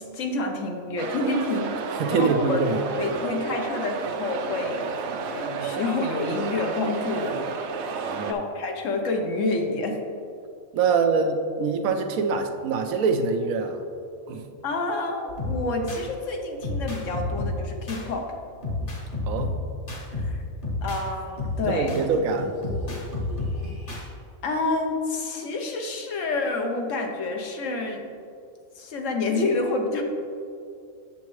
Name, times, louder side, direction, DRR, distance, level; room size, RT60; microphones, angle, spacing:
voice 1, 0.0-1.7 2.1-2.6 3.0-4.9 5.3-7.5 8.0-10.0 10.9-11.0 14.6-18.4 18.8-18.9 20.1-20.4 20.8-22.0 24.4-28.1 28.7-30.0, left 2 dB, 65° left, 3 dB, 1.2 m, -28 dB
sound 1, 1.0-8.3, right 5 dB, 65° right, 0.8 m, -31 dB
voice 2, 2.0-2.8 8.0-8.4 10.7-13.8 14.3-14.4 19.3-19.6 21.7-22.5, right 5 dB, 85° right, 6 dB, 1.1 m, -24 dB
sound 2, 15.3-16.1 16.6-18.1 18.6-21.1 21.4-24.1, left 2 dB, 40° left, 1.4 m, -30 dB
8.3 x 6.9 x 3.1 m, 2.4 s
omnidirectional pair, 1.4 m